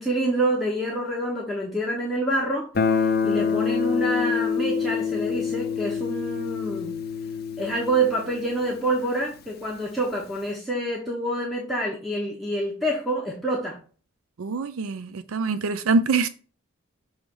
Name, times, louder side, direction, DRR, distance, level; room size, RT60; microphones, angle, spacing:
voice 1, 0.0-2.7 3.2-6.9 7.6-13.8, right 1 dB, ahead, 1.0 m, -27 dB
Guitar, 2.7-9.5, left 6 dB, 45° left, 0.7 m, -27 dB
voice 2, 14.4-16.3, right 4 dB, 85° right, 0.5 m, -24 dB
6.3 x 3.2 x 5.3 m
head